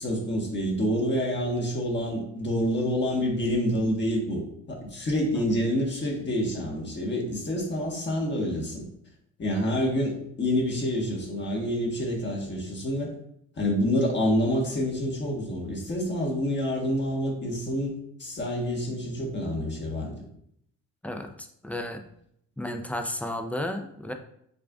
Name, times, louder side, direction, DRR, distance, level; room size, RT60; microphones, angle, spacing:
voice 1, 0.0-4.4 4.7-8.8 9.4-13.1 13.6-17.9 18.2-20.2, equal, 35° left, -1 dB, 1.3 m, -27 dB
voice 2, 21.0-22.1 22.6-24.1, left 1 dB, 5° left, 6 dB, 0.4 m, -33 dB
6.5 x 2.5 x 2.4 m, 0.71 s
cardioid pair, 90°, 30 cm